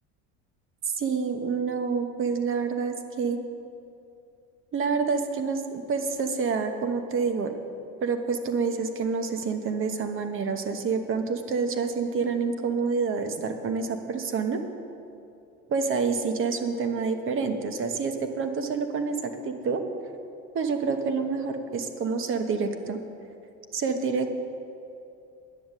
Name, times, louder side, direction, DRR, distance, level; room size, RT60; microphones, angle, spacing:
voice 1, 0.8-3.4 4.7-7.5 8.0-14.6 15.7-19.8 20.5-23.0 23.7-24.3, right 5 dB, 40° right, 7 dB, 1.1 m, -28 dB
10.5 x 6.9 x 9.1 m, 2.7 s
supercardioid pair, 115°, 33 cm